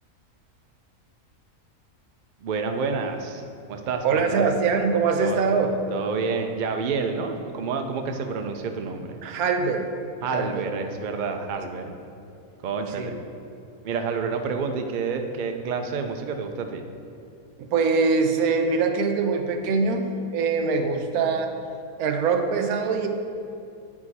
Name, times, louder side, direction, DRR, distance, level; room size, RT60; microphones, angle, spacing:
voice 1, 2.4-3.4 3.7-4.5 5.2-5.4 5.9-9.2 10.2-11.9 12.6-13.1 13.8-16.8, right 5 dB, 70° right, 5 dB, 0.4 m, -29 dB
voice 2, 4.0-5.7 9.2-9.9 10.3-10.7 11.8-11.9 13.0-13.1 17.6-21.5 22.0-23.1, right 4 dB, 90° right, 5 dB, 1.2 m, -23 dB
8.7 x 4.8 x 4.1 m, 2.7 s
omnidirectional pair, 1.5 m